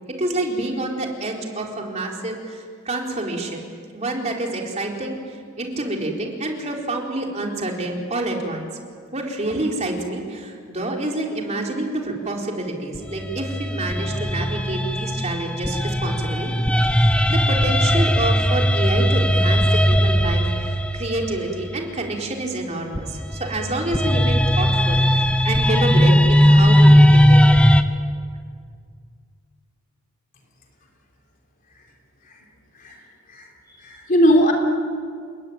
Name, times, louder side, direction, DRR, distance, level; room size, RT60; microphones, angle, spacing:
voice 1, 0.1-8.7 9.1-16.5 16.8-27.6, right 2 dB, 35° right, 0 dB, 4.1 m, -28 dB
sound 1, 13.0-22.1 23.0-27.8, equal, 5° left, 1.0 m, -18 dB
voice 2, 33.8-34.5, equal, 40° left, 2 dB, 3.5 m, -18 dB
30.0 x 19.5 x 9.4 m, 2.1 s
head